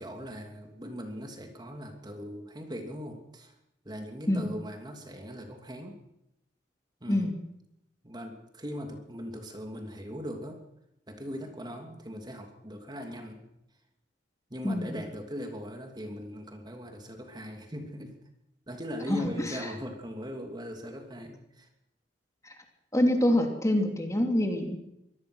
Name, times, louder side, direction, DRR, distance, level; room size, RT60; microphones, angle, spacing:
voice 1, 0.0-3.5 3.8-6.0 7.0-7.3 8.0-10.6 11.1-13.4 14.5-18.2 18.7-21.7, equal, 25° right, 4 dB, 2.8 m, -40 dB
voice 2, 14.6-15.0 19.1-19.2 22.4-22.5 22.9-24.8, left 1 dB, 15° left, 4 dB, 2.8 m, -25 dB
24.0 x 18.0 x 6.3 m, 0.83 s
head